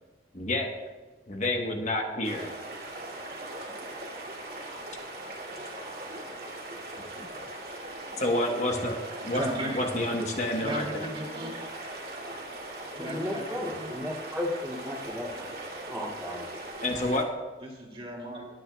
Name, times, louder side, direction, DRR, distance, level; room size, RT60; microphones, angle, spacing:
voice 1, 0.3-0.7 1.3-2.5 7.2-7.3 8.2-9.0 9.2-9.4 9.7-11.1 16.8-17.3, left 1 dB, 40° left, 2 dB, 1.0 m, -28 dB
sound 1, 2.2-17.2, right 1 dB, 55° right, 2.3 m, -40 dB
voice 2, 9.2-10.1 10.6-11.7 12.9-14.2 17.6-18.5, right 1 dB, 30° right, 0 dB, 2.3 m, -37 dB
voice 3, 12.9-15.5 15.9-16.4, left 1 dB, 10° right, -5 dB, 2.3 m, -34 dB
20.5 x 9.0 x 2.3 m, 1.3 s
head